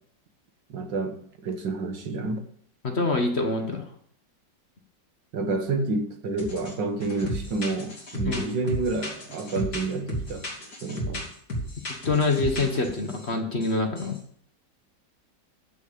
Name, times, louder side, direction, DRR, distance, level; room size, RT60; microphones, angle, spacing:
voice 1, 0.7-1.2 1.4-2.4 5.3-10.5 10.8-11.3, right 3 dB, 80° right, 2.2 m, -29 dB
voice 2, 2.8-3.9 8.2-8.4 11.9-14.2, left 3 dB, 40° left, 1.6 m, -26 dB
sound 1, 6.4-6.7 7.0-13.3 13.6-14.2, equal, 55° left, 3.2 m, -34 dB
14.0 x 6.4 x 6.9 m
omnidirectional pair, 1.9 m